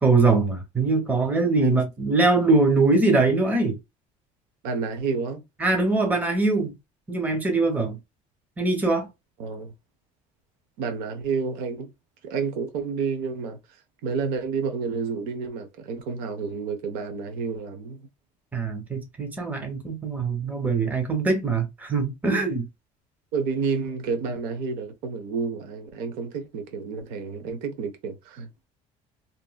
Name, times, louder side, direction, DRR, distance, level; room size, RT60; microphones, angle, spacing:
voice 1, 0.0-3.8 5.6-6.7 7.1-8.0 8.6-9.1 18.5-22.6, right 3 dB, 10° right, 0.8 m, -22 dB
voice 2, 4.6-5.4 9.4-9.7 10.8-11.9 12.2-13.6 14.0-18.1 23.3-28.7, right 5 dB, 85° right, 0.9 m, -30 dB
3.0 x 2.6 x 2.2 m
cardioid pair, 150°, 15 cm